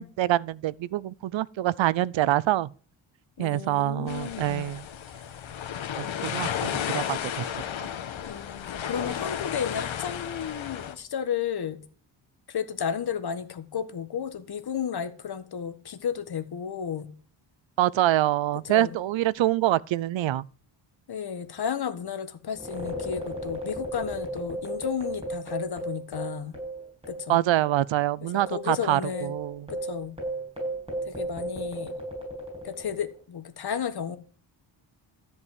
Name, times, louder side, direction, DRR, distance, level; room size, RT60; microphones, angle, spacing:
voice 1, 0.0-2.7 3.4-4.9 6.0-7.5 17.8-20.4 27.3-29.7, right 14 dB, 75° right, 0.6 m, -25 dB
voice 2, 3.4-4.7 8.2-11.8 12.5-17.1 18.6-19.0 21.1-26.6 27.1-27.4 28.5-29.3 29.7-30.1 31.1-31.9 32.6-34.2, left 8 dB, 55° left, 1.6 m, -33 dB
sound 1, 4.1-10.9, left 9 dB, 80° left, 1.5 m, -33 dB
sound 2, 22.5-27.4 27.6-27.7 28.4-33.1, right 1 dB, 10° right, 6.4 m, -35 dB
13.5 x 5.6 x 9.4 m
wide cardioid pair, 165°, 46 cm